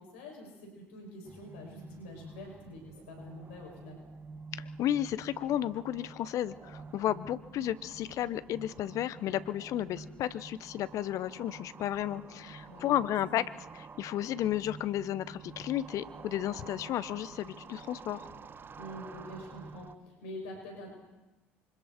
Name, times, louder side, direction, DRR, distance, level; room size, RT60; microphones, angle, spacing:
voice 1, 0.0-4.0 12.7-13.0 13.3-13.4 18.8-20.9, left 1 dB, 70° left, 1 dB, 7.0 m, -46 dB
sound 1, 1.2-19.9, right 4 dB, 30° right, 1.4 m, -49 dB
voice 2, 4.5-13.4 13.7-18.3, left 12 dB, 55° left, 15 dB, 1.1 m, -33 dB
28.0 x 25.0 x 4.5 m, 1.1 s
figure-of-eight pair, 60°, 7 cm